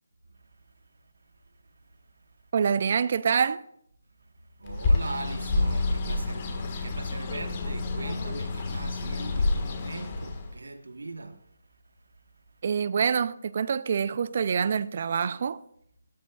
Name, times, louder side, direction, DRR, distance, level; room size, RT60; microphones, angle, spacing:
voice 1, 2.5-3.6 12.6-15.6, right 6 dB, 45° right, 0.4 m, -26 dB
voice 2, 4.6-11.4, right 3 dB, 85° right, 1.3 m, -40 dB
Bird, 4.7-10.6, left 2 dB, 30° left, 1.5 m, -28 dB
14.5 x 13.0 x 2.3 m
figure-of-eight pair, 160°, 0 cm